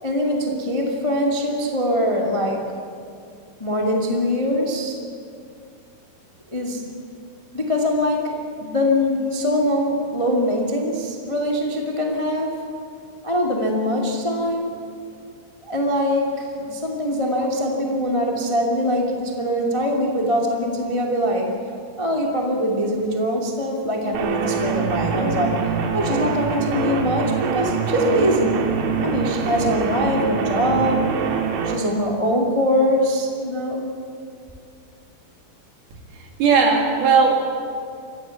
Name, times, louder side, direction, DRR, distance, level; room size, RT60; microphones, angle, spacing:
voice 1, 0.0-2.7 3.6-5.0 6.5-6.8 7.5-12.6 13.2-14.8 15.7-21.5 22.0-25.5 25.9-28.6 29.0-31.1 31.6-33.9, equal, 50° left, -1 dB, 0.3 m, -22 dB
sound 1, 24.1-31.8, right 6 dB, 85° right, 4.1 m, -24 dB
voice 2, 36.1-37.4, right 5 dB, 60° right, 0 dB, 4.3 m, -17 dB
25.0 x 16.0 x 7.1 m, 2.4 s
omnidirectional pair, 5.1 m